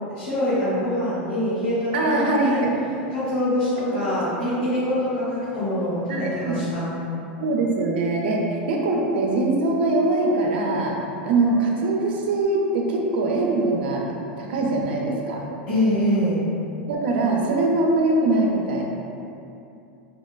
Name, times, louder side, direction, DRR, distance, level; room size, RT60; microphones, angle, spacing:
voice 1, 0.1-2.6 3.1-6.9 15.7-16.5, left 1 dB, 70° left, -14 dB, 1.4 m, -24 dB
voice 2, 1.9-2.7 6.1-6.6 7.4-11.0 11.2-14.0 14.4-15.4 16.9-18.8, right 2 dB, 80° right, -1 dB, 0.5 m, -22 dB
4.0 x 2.1 x 2.3 m, 2.7 s
supercardioid pair, 115°, 5 cm